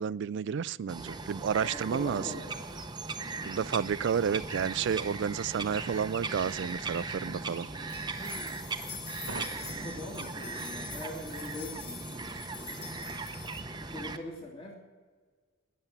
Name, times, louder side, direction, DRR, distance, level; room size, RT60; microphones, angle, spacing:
voice 1, 0.0-2.2 3.4-7.7, right 7 dB, 60° right, 0.3 m, -31 dB
Bird vocalization bird call bird song, 0.9-14.2, right 3 dB, 20° right, 0.8 m, -38 dB
voice 2, 1.6-2.6 8.0-8.1 9.8-13.0 13.8-14.8, left 1 dB, 30° left, 2.2 m, -42 dB
sound 1, 1.8-12.2, right 3 dB, 80° right, 1.5 m, -53 dB
sound 2, 7.9-13.6, left 6 dB, 55° left, 2.6 m, -45 dB
13.0 x 10.5 x 8.2 m
head